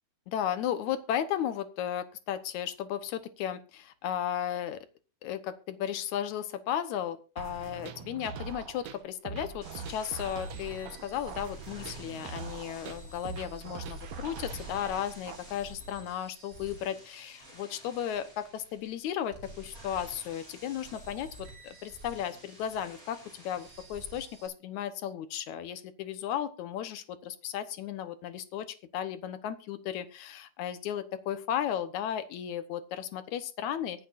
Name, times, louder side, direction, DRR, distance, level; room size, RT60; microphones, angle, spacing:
voice 1, 0.3-4.9 5.2-28.7 28.9-34.1, left 10 dB, 70° left, 11 dB, 1.8 m, -35 dB
sound 1, 7.4-15.4, right 5 dB, 70° right, 1.6 m, -42 dB
sound 2, 9.6-24.5, right 1 dB, 15° right, 8.2 m, -50 dB
24.0 x 8.8 x 2.6 m, 0.31 s
omnidirectional pair, 4.7 m